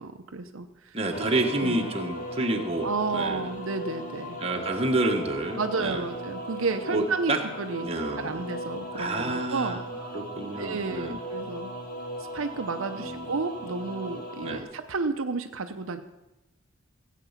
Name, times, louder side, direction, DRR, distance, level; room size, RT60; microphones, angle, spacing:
voice 1, 0.0-1.0 1.6-2.0 2.8-4.4 5.6-7.9 8.2-10.2 10.6-11.7 12.3-16.0, right 4 dB, 80° right, 6 dB, 0.7 m, -32 dB
voice 2, 0.9-3.4 4.4-6.0 6.9-7.4 7.8-8.5 8.9-9.8 10.1-11.2 12.9-13.3 14.4-14.6, right 2 dB, 30° right, 2 dB, 1.3 m, -29 dB
sound 1, 1.1-14.6, right 1 dB, 40° left, 1.7 m, -37 dB
15.5 x 8.4 x 5.8 m, 0.99 s
head